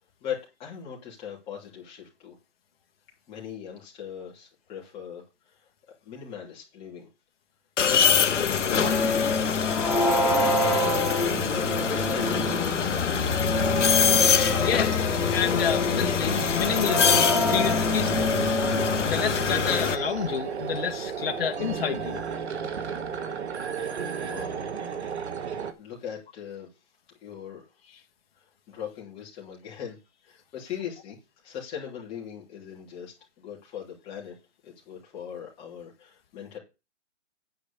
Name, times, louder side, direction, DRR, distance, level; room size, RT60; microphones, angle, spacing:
voice 1, 0.2-2.3 3.3-5.2 6.0-7.1 8.1-9.7 10.0-10.9 11.9-12.7 23.9-24.5 24.8-25.1 25.8-26.7 27.2-27.6 28.7-30.0 30.2-31.2 31.4-34.3 34.6-36.6, left 8 dB, 15° left, 3.3 m, -40 dB
sound 1, 7.8-19.9, left 7 dB, 80° left, 1.1 m, -25 dB
sound 2, 8.7-12.9 13.3-19.2, left 1 dB, ahead, 0.9 m, -27 dB
sound 3, 10.8-25.7, right 6 dB, 65° right, 1.7 m, -35 dB
voice 2, 14.6-15.0 15.3-18.4 19.0-22.2, left 8 dB, 55° left, 1.4 m, -29 dB
9.8 x 5.0 x 6.9 m
hypercardioid pair, 160°, 36 cm